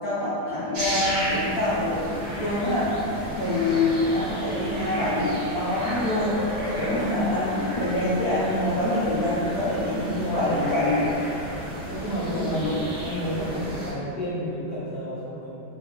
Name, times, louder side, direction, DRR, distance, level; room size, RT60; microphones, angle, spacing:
voice 1, 0.0-2.1 2.4-6.3 6.6-11.2 12.3-12.7, left 1 dB, 70° left, -10 dB, 0.9 m, -25 dB
sound 1, 0.7-13.9, equal, 60° right, 1.2 m, -33 dB
voice 2, 3.3-3.9 10.2-11.2 11.8-15.5, equal, 20° right, -14 dB, 0.4 m, -32 dB
3.6 x 3.0 x 2.4 m, 2.8 s
omnidirectional pair, 2.2 m